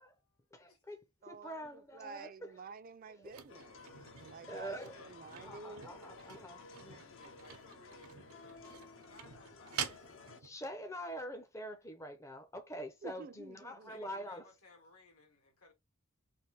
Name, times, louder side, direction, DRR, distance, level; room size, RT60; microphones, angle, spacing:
voice 1, 0.0-0.8 4.5-5.9 6.7-10.1 13.8-15.7, left 3 dB, 80° left, 1.7 m, -62 dB
voice 2, 0.5-2.5 3.2-3.3 4.5-5.0 5.4-7.0 10.4-14.4, equal, 15° left, 0.5 m, -45 dB
voice 3, 1.2-3.8 4.2-6.0 13.0-14.3, right 4 dB, 40° right, 0.4 m, -51 dB
sound 1, 3.2-10.6 11.1-11.2, right 8 dB, 85° right, 0.8 m, -47 dB
sound 2, 3.5-10.4, left 4 dB, 60° left, 0.7 m, -55 dB
3.4 x 2.6 x 4.2 m
head